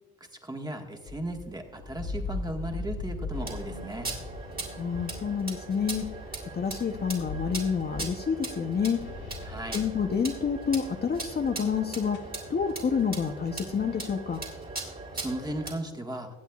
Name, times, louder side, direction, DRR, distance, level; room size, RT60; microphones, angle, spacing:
voice 1, 0.4-4.1 9.4-9.8 15.1-16.3, right 1 dB, 15° right, 3 dB, 1.5 m, -36 dB
sound 1, 1.1-8.0, left 3 dB, 70° left, 3.0 m, -39 dB
sound 2, 3.3-15.7, right 2 dB, 30° right, 2.4 m, -39 dB
voice 2, 4.7-6.0 6.5-9.0 9.7-14.4, left 6 dB, 35° left, 4 dB, 0.7 m, -28 dB
sound 3, 9.0-11.8 12.1-15.6, left 3 dB, 85° left, 1.3 m, -49 dB
21.0 x 8.2 x 2.3 m, 1.2 s
cardioid pair, 90°, 30 cm